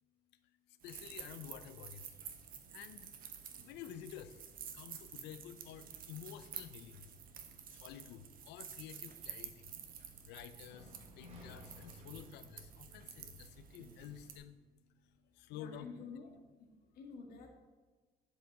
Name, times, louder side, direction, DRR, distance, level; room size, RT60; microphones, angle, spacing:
voice 1, 0.7-2.2 2.7-3.1 3.6-4.4 4.7-7.1 7.7-9.7 10.3-15.9, left 10 dB, 85° left, 12 dB, 0.6 m, -51 dB
sound 1, 0.8-14.4, right 7 dB, 55° right, 1.1 m, -51 dB
sound 2, 10.7-14.6, left 1 dB, 40° right, 3.0 m, -57 dB
voice 2, 15.2-16.3 16.6-17.5, left 5 dB, 70° left, 1 dB, 1.9 m, -50 dB
10.5 x 5.0 x 4.8 m, 1.3 s
cardioid pair, 110°, 17 cm